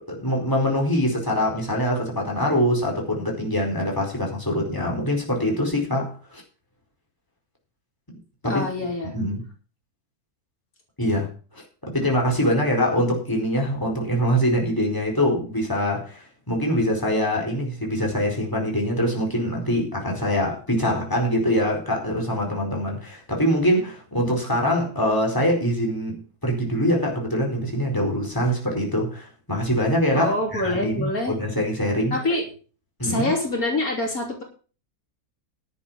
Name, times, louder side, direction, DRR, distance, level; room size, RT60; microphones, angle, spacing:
voice 1, 0.0-6.4 8.4-8.7 9.1-9.4 11.0-11.3 11.5-32.1 33.0-33.3, equal, 15° left, 4.5 m, -24 dB
voice 2, 8.5-9.2 30.1-31.3 32.1-32.4 33.0-34.4, left 2 dB, 70° left, 3.8 m, -25 dB
11.0 x 8.4 x 7.3 m
omnidirectional pair, 1.5 m